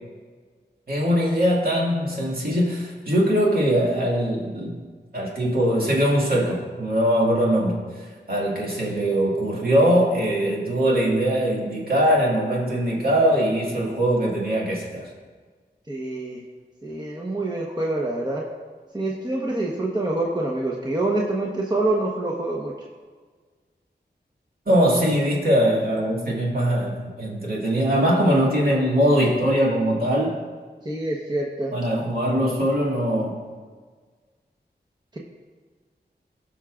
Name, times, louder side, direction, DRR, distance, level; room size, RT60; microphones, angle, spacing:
voice 1, 0.9-4.8 5.1-7.8 8.3-15.1 24.7-30.4 31.7-33.4, equal, 55° right, -4 dB, 2.1 m, -21 dB
voice 2, 15.9-16.4 16.8-18.4 18.9-22.7 30.8-31.7 35.1-35.2, right 2 dB, 25° right, -2 dB, 1.0 m, -26 dB
17.0 x 5.8 x 2.5 m, 1.5 s
wide cardioid pair, 55°, 18 cm